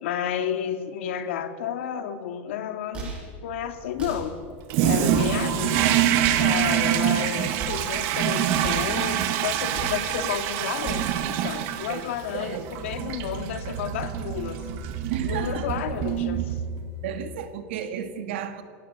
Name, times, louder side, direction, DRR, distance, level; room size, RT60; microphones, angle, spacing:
voice 1, 0.0-4.3 4.8-14.6 15.2-16.6, left 9 dB, 75° left, 8 dB, 2.1 m, -31 dB
sound 1, 2.9-3.3 4.0-4.4 5.1-5.5 6.2-6.6 7.6-7.9 8.6-9.0 9.7-10.1 10.8-11.2, right 4 dB, 15° right, 7.5 m, -36 dB
Toilet flush, 4.7-17.0, right 10 dB, 40° right, 1.6 m, -26 dB
voice 2, 12.3-12.7 15.1-15.7 17.0-18.6, right 9 dB, 65° right, 7 dB, 2.1 m, -33 dB
30.0 x 17.5 x 6.9 m, 2.1 s
supercardioid pair, 180°, 7 cm